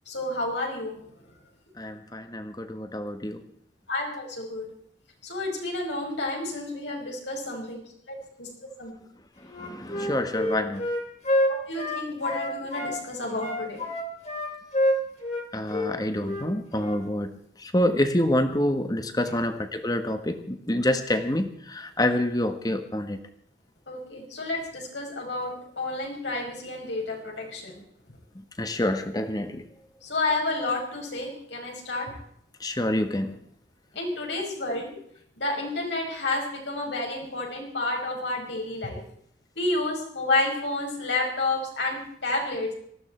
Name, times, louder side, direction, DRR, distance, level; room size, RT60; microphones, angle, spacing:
voice 1, 0.1-1.0 3.9-4.7 5.2-7.8 8.1-8.5 8.8-8.9 11.5-13.8 19.3-19.4 23.9-27.8 30.0-32.1 34.0-34.9 35.4-39.0 39.6-42.7, left 2 dB, 80° left, 0 dB, 5.5 m, -30 dB
voice 2, 1.8-3.4 9.6-10.9 15.5-17.3 17.6-23.2 28.6-29.7 32.6-33.3, left 1 dB, 20° left, 9 dB, 1.3 m, -27 dB
Wind instrument woodwind instrument, 9.5-12.9 13.4-15.4 15.7-15.9 16.2-16.5 16.8-17.0, left 1 dB, 40° left, 2.9 m, -27 dB
19.0 x 14.5 x 4.4 m, 0.67 s
head